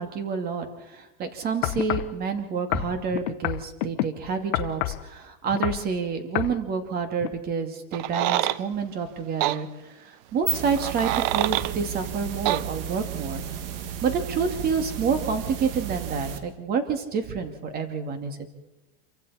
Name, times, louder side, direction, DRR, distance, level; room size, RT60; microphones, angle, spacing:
voice 1, 0.0-9.7 10.0-13.4 14.0-18.5, right 5 dB, 30° right, 6 dB, 2.3 m, -28 dB
sound 1, 1.6-2.1 2.7-4.1 4.5-5.0 5.5-5.9 6.3-6.6 7.2-7.3, left 19 dB, 60° left, 0.9 m, -28 dB
sound 2, 7.9-8.6 9.4-9.6 10.8-11.7 12.5-12.6, right 15 dB, 50° right, 0.6 m, -25 dB
sound 3, 10.2-16.4, right 10 dB, 70° right, 2.2 m, -33 dB
27.5 x 24.0 x 4.3 m, 1.1 s
supercardioid pair, 145°, 30 cm